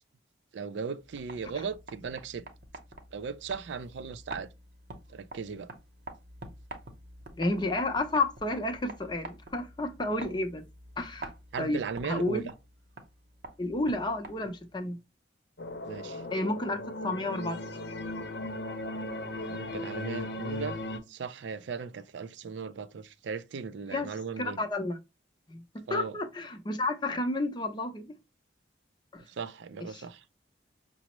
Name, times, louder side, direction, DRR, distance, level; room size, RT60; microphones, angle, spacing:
voice 1, 0.5-2.5 3.1-4.5 5.1-5.7 10.2-10.4 11.5-12.5 15.9-16.2 19.5-20.8 21.1-24.6 25.9-26.2 29.3-30.2, right 5 dB, 75° right, 0.4 m, -37 dB
sound 1, 1.0-14.7, right 2 dB, 55° right, 0.8 m, -47 dB
voice 2, 7.4-10.6 11.0-11.3 11.6-11.8 12.0-12.5 13.6-15.0 16.3-17.6 23.9-24.1 24.4-25.0 25.5-28.1 29.1-29.2 29.9-30.0, left 2 dB, 25° left, 0.5 m, -31 dB
sound 2, 15.6-21.0, left 1 dB, 65° left, 0.7 m, -37 dB
5.9 x 2.0 x 2.9 m
head